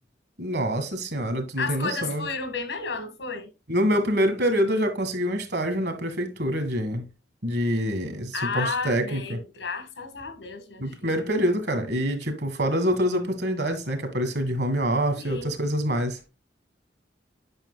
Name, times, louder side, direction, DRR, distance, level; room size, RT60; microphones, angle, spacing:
voice 1, 0.4-2.3 3.7-7.1 7.4-9.4 10.8-16.3, equal, 65° right, 1.7 m, -26 dB
voice 2, 1.6-3.5 8.3-11.3 15.2-15.6, left 4 dB, 90° left, 1.6 m, -32 dB
8.9 x 5.6 x 2.3 m
head